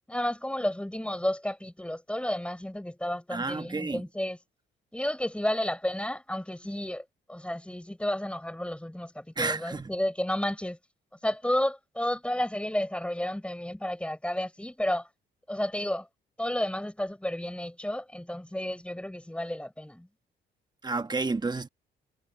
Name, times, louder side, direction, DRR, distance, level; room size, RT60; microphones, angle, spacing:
voice 1, 0.1-4.4 4.9-10.8 11.2-15.1 15.5-16.1 16.4-20.1, left 1 dB, 5° left, 4.3 m, -31 dB
voice 2, 3.3-4.0 9.4-9.9 20.8-21.7, right 3 dB, 20° right, 1.2 m, -30 dB
cardioid pair, 90°, 20 cm